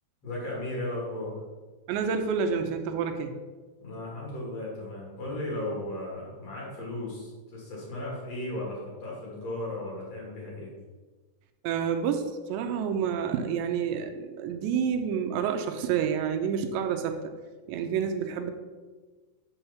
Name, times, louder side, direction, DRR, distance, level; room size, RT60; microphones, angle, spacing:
voice 1, 0.2-1.3 3.8-10.7, left 1 dB, 40° left, -4 dB, 3.3 m, -35 dB
voice 2, 1.9-3.3 11.6-17.2 17.7-18.5, right 7 dB, 85° right, 7 dB, 2.9 m, -29 dB
7.3 x 7.0 x 7.1 m, 1.3 s
omnidirectional pair, 5.2 m